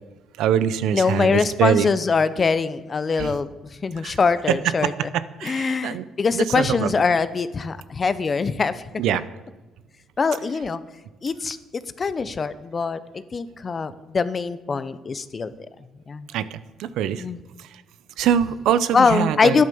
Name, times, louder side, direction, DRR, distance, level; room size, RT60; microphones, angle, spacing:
voice 1, 0.4-1.9 3.2-3.3 4.0-4.1 4.5-6.0 6.3-6.9 9.0-9.2 16.3-17.3 17.6-17.8 18.2-19.6, right 9 dB, 85° right, 15 dB, 0.7 m, -23 dB
voice 2, 0.9-4.9 5.4-8.8 10.2-10.8 11.2-15.5 16.1-16.3 17.2-17.4 18.9-19.6, left 4 dB, 35° left, 14 dB, 0.9 m, -23 dB
12.0 x 10.5 x 7.0 m, 1.2 s
cardioid pair, 100°, 0 cm